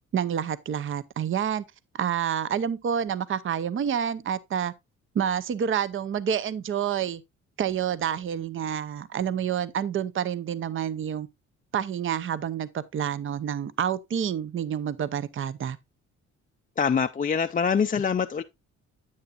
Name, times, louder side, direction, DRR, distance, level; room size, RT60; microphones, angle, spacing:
voice 1, 0.1-1.6 1.9-4.7 5.1-7.2 7.6-11.3 11.7-15.8, right 8 dB, 40° right, 0.7 m, -28 dB
voice 2, 16.8-18.4, left 6 dB, 25° left, 0.4 m, -24 dB
9.6 x 8.2 x 2.4 m
cardioid pair, 90°, 30 cm